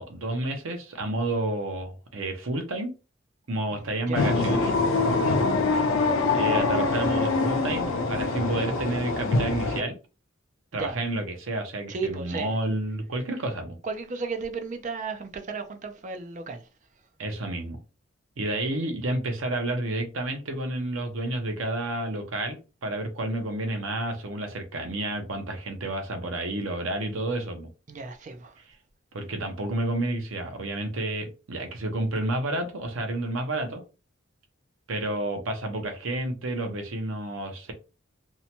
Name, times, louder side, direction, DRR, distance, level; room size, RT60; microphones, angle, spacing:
voice 1, 0.0-2.9 3.5-4.8 6.3-10.0 10.7-13.8 17.2-17.8 18.4-27.7 29.1-33.8 34.9-37.7, right 2 dB, 80° right, 0.7 m, -30 dB
voice 2, 3.7-4.4 10.7-11.0 11.9-12.5 13.8-16.7 27.9-28.6, right 4 dB, 40° right, 0.4 m, -34 dB
sound 1, 4.1-9.8, left 3 dB, 80° left, 0.5 m, -24 dB
2.7 x 2.2 x 2.8 m
head